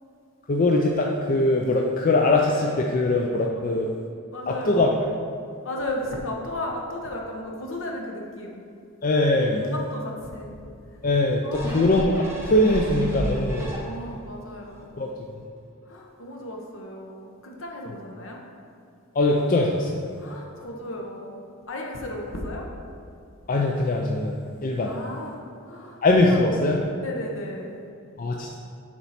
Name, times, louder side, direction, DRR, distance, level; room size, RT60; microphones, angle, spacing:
voice 1, 0.5-3.9 4.5-4.9 9.0-9.7 11.0-13.7 15.0-15.1 19.2-20.0 23.5-24.9 26.0-26.8 28.2-28.6, left 2 dB, 40° left, 0 dB, 0.4 m, -22 dB
voice 2, 4.3-4.9 5.6-8.6 9.5-10.6 10.9-11.0 11.4-11.9 13.8-15.0 15.8-18.4 20.2-22.7 24.8-26.4 27.0-27.8, left 1 dB, 70° left, 0 dB, 1.0 m, -35 dB
sound 1, 11.5-14.2 14.7-14.8, equal, 10° right, 1.0 m, -32 dB
7.0 x 4.5 x 4.2 m, 2.4 s
head